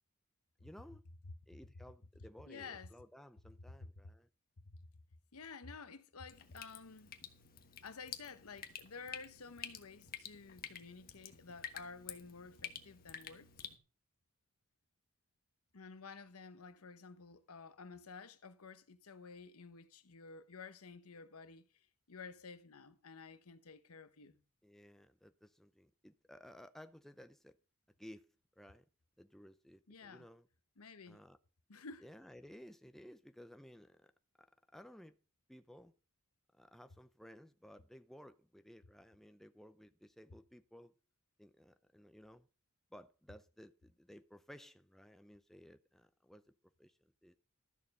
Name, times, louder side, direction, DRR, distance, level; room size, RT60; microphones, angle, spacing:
voice 1, 0.6-1.0 1.5-4.3 24.6-27.6 28.0-28.2 28.6-28.8 29.2-30.5 31.1-31.4 32.0-34.1 34.4-34.5 34.7-35.2 35.5-35.9 36.6-40.9 41.4-42.5 42.9-46.4 46.8-47.4, equal, ahead, 0.6 m, -57 dB
voice 2, 2.5-2.9 4.6-4.8 5.3-7.1 7.8-13.5 15.7-21.6 22.1-24.4 29.9-30.3 30.8-31.2 31.7-32.0, left 4 dB, 80° left, 1.0 m, -52 dB
Drip, 6.3-13.8, left 8 dB, 45° left, 1.3 m, -50 dB
13.0 x 6.8 x 5.4 m
head